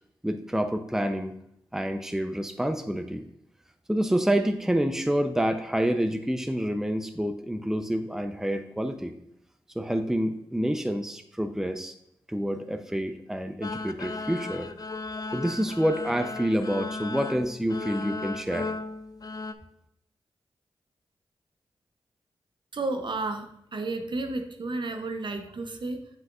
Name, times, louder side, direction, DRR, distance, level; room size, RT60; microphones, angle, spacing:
voice 1, 0.2-1.3 1.7-3.3 3.9-9.1 9.8-11.9 12.3-14.7 15.3-18.7, equal, 5° right, 7 dB, 0.6 m, -28 dB
sound 1, 13.6-19.5, left 3 dB, 40° left, 0.5 m, -36 dB
voice 2, 22.7-26.1, right 2 dB, 55° right, 6 dB, 0.8 m, -32 dB
7.7 x 5.7 x 2.4 m, 0.76 s
cardioid pair, 45°, 10 cm